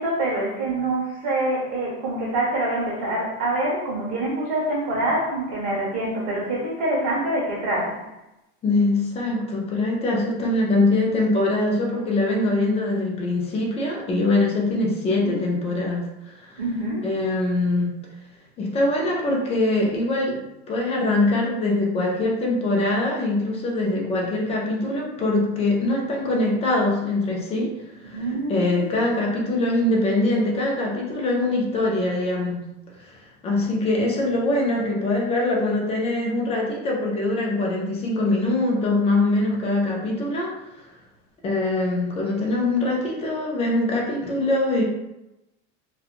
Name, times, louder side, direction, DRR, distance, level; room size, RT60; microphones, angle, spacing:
voice 1, 0.0-8.0 15.2-15.4 16.6-17.1 28.1-29.0, right 1 dB, 50° right, -4 dB, 1.4 m, -25 dB
voice 2, 8.6-16.6 17.0-17.9 18.6-20.4 20.7-32.6 33.0-33.1 33.4-40.5 41.4-44.8, left 2 dB, 20° left, -2 dB, 0.3 m, -23 dB
2.8 x 2.2 x 2.4 m, 0.93 s
cardioid pair, 155°, 32 cm